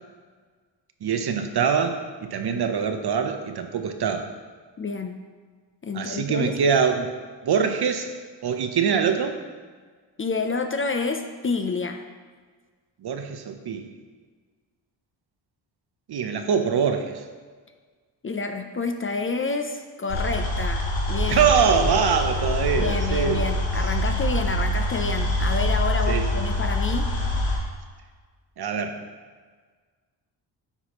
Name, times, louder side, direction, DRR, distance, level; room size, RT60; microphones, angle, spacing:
voice 1, 1.0-4.3 5.9-7.1 7.4-8.1 8.4-9.4 13.0-13.9 16.1-17.2 21.3-23.4 26.1-26.3 28.6-29.0, right 6 dB, 55° right, 7 dB, 0.7 m, -23 dB
voice 2, 4.8-5.2 5.8-6.6 10.2-12.0 18.2-21.5 22.8-27.1, left 4 dB, 25° left, 6 dB, 0.5 m, -29 dB
sound 1, 20.1-27.6, left 1 dB, 65° left, 1.7 m, -25 dB
9.7 x 4.1 x 3.0 m, 1.5 s
supercardioid pair, 50°, 49 cm